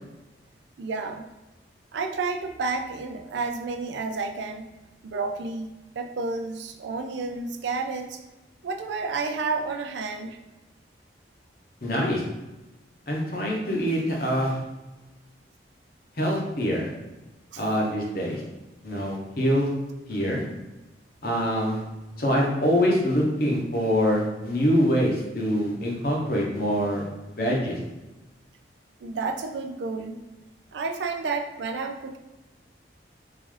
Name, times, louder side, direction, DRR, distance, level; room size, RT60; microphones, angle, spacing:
voice 1, 0.8-1.3 1.9-4.6 5.0-8.2 8.6-10.4 17.5-17.6 29.0-30.2 30.7-32.2, right 4 dB, 80° right, 5 dB, 0.4 m, -31 dB
voice 2, 11.8-12.2 13.1-14.5 16.2-16.9 17.6-18.4 18.8-19.7 20.1-20.4 21.2-21.8 22.2-27.0 27.4-27.8, equal, 55° left, -2 dB, 0.9 m, -24 dB
3.7 x 2.5 x 3.2 m, 1.1 s
head